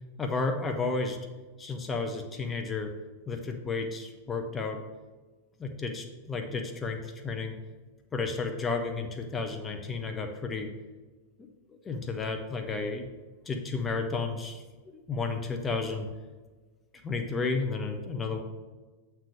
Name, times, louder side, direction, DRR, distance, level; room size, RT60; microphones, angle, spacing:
voice 1, 0.2-1.2 1.6-2.9 3.3-4.8 5.6-7.6 8.1-10.7 11.4-13.1 13.5-14.6 14.9-16.1 17.0-18.4, left 4 dB, 20° left, 4 dB, 0.7 m, -32 dB
7.4 x 3.5 x 6.3 m, 1.3 s
figure-of-eight pair, 90°, 0 cm